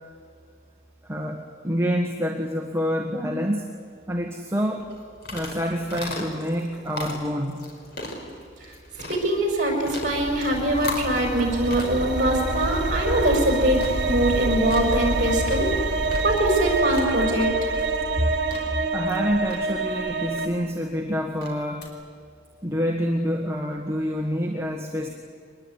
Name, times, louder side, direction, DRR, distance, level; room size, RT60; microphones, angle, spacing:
voice 1, 1.0-3.7 4.1-4.9 5.3-7.6 18.9-21.9 22.6-25.1, equal, 15° right, 2 dB, 1.7 m, -27 dB
sound 1, 4.8-21.9, left 1 dB, 60° left, 4.8 m, -39 dB
voice 2, 9.1-15.7 16.2-17.7, right 1 dB, 45° right, 2 dB, 6.8 m, -23 dB
sound 2, 9.7-20.5, right 3 dB, 60° right, 2.2 m, -27 dB
24.0 x 20.5 x 9.6 m, 2.2 s
head